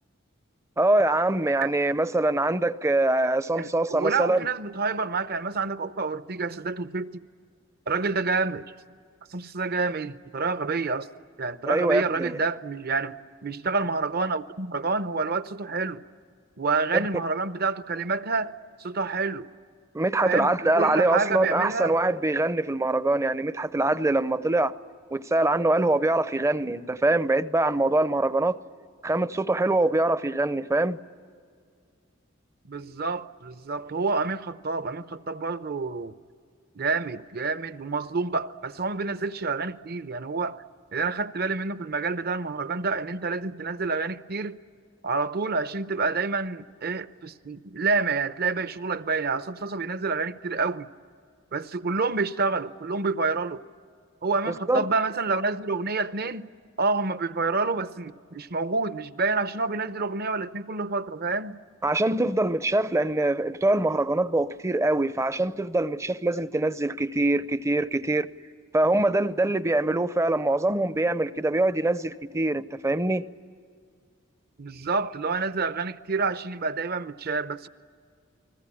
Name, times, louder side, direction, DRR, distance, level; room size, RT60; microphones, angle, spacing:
voice 1, 0.8-4.4 11.7-12.4 16.9-17.1 19.9-24.7 25.1-28.6 29.0-31.0 54.7-54.9 61.8-68.3 68.7-73.2, right 2 dB, 15° right, 0.6 m, -24 dB
voice 2, 3.6-7.1 7.9-8.7 9.3-11.1 11.4-16.0 16.6-18.5 18.8-19.5 20.2-21.9 32.7-36.1 36.8-40.6 40.9-44.6 45.0-50.9 51.5-53.6 54.2-56.5 56.8-61.6 74.6-77.7, right 4 dB, 50° right, 0.8 m, -28 dB
29.5 x 20.5 x 8.6 m
head